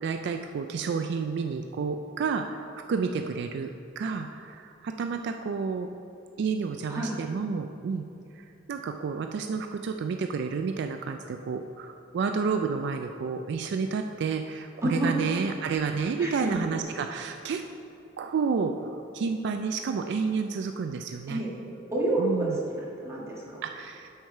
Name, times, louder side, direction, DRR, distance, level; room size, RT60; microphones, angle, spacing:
voice 1, 0.0-5.9 6.4-8.0 8.4-17.6 18.2-21.4 22.2-22.6 23.6-24.1, right 5 dB, 60° right, 6 dB, 0.3 m, -30 dB
voice 2, 14.8-15.2 16.2-16.6 21.3-21.5 21.9-23.6, right 1 dB, 15° right, -6 dB, 1.5 m, -29 dB
8.0 x 4.8 x 5.5 m, 2.7 s
head